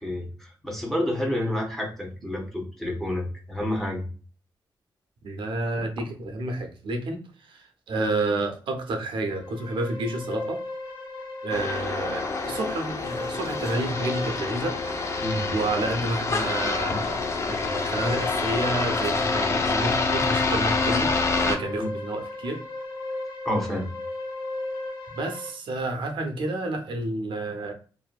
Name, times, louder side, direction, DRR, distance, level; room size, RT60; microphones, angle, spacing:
voice 1, 0.0-4.1 15.2-15.5 21.8-21.9 23.4-23.9, left 1 dB, 5° left, 0 dB, 0.7 m, -29 dB
voice 2, 5.2-10.6 11.4-15.2 15.5-21.1 21.4-22.6 25.1-27.7, right 2 dB, 85° right, 5 dB, 0.6 m, -30 dB
sound 1, 9.2-25.5, left 2 dB, 75° left, 0.8 m, -36 dB
sound 2, 11.5-21.6, left 4 dB, 35° left, 0.4 m, -27 dB
2.6 x 2.5 x 2.2 m, 0.38 s
wide cardioid pair, 135°, 8 cm